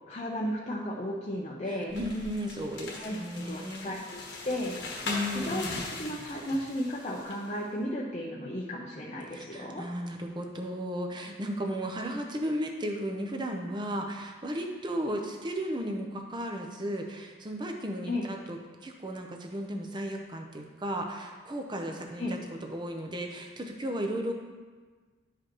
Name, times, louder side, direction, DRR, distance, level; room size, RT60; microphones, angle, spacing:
voice 1, 0.1-2.0 3.0-4.8 5.3-9.8 18.1-18.3 22.2-22.4, left 1 dB, 35° left, -5 dB, 0.6 m, -34 dB
voice 2, 1.7-3.9 5.1-5.8 9.3-24.3, equal, 25° right, 2 dB, 0.6 m, -35 dB
sound 1, 1.9-7.5, left 3 dB, 60° left, 1.2 m, -40 dB
11.0 x 4.9 x 3.0 m, 1.4 s
head